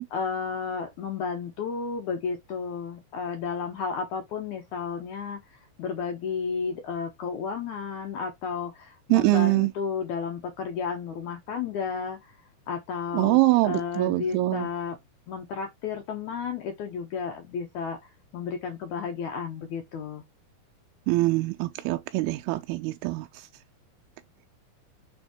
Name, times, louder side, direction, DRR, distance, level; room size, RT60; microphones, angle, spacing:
voice 1, 0.1-13.4 13.6-15.0 15.3-20.2, left 6 dB, 75° left, 1.8 m, -33 dB
voice 2, 9.1-9.7 13.1-14.7 21.1-23.5, right 20 dB, 90° right, 2.5 m, -24 dB
6.7 x 3.5 x 4.3 m
omnidirectional pair, 4.4 m